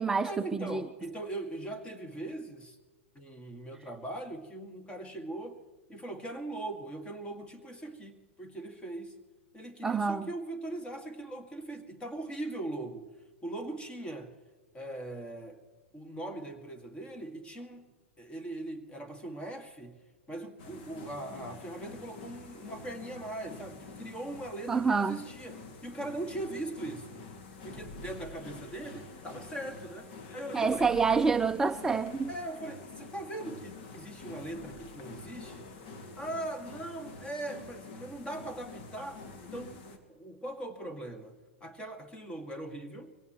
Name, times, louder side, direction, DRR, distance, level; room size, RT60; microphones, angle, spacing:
voice 1, 0.2-2.8 3.1-5.6 5.9-9.2 9.5-13.1 13.4-14.3 14.7-15.6 15.9-17.9 18.2-20.0 20.3-27.2 27.6-30.9 32.3-35.7 36.2-41.3 41.6-43.1, right 1 dB, 15° left, 8 dB, 2.2 m, -40 dB
voice 2, 9.8-10.3 24.7-25.2 30.5-32.3, right 5 dB, 10° right, 9 dB, 0.5 m, -27 dB
sound 1, 20.6-40.0, left 3 dB, 55° left, 2.4 m, -47 dB
23.5 x 17.5 x 3.2 m, 1.3 s
hypercardioid pair, 110°, 7 cm